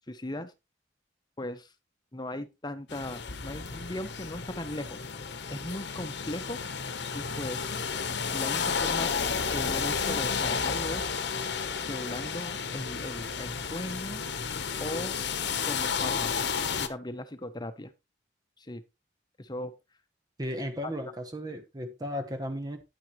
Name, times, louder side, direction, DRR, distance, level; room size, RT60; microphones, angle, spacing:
voice 1, 0.1-0.5 1.4-1.7 2.1-5.0 5.5-6.6 7.1-7.7 8.3-9.1 9.5-11.1 11.9-14.2 14.8-15.2 15.6-16.5 16.8-17.9 18.6-18.8 19.4-19.7 20.8-20.9, left 1 dB, 20° left, 1.0 m, -38 dB
sound 1, 2.9-16.9, left 6 dB, 60° left, 1.0 m, -32 dB
voice 2, 20.4-22.8, equal, 20° right, 0.9 m, -35 dB
10.0 x 9.1 x 3.1 m
head